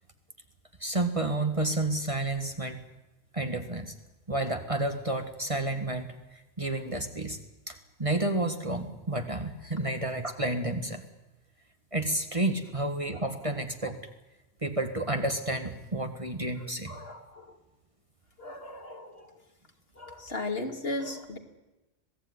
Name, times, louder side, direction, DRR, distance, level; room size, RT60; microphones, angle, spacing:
voice 1, 0.8-2.8 3.3-3.9 4.3-7.4 7.7-11.0 11.9-14.0 14.6-17.0, right 2 dB, 25° right, 6 dB, 1.7 m, -30 dB
voice 2, 16.9-17.6 18.4-19.4 20.0-21.4, left 2 dB, 50° left, 5 dB, 2.7 m, -36 dB
26.0 x 17.5 x 9.7 m, 1.0 s
omnidirectional pair, 1.3 m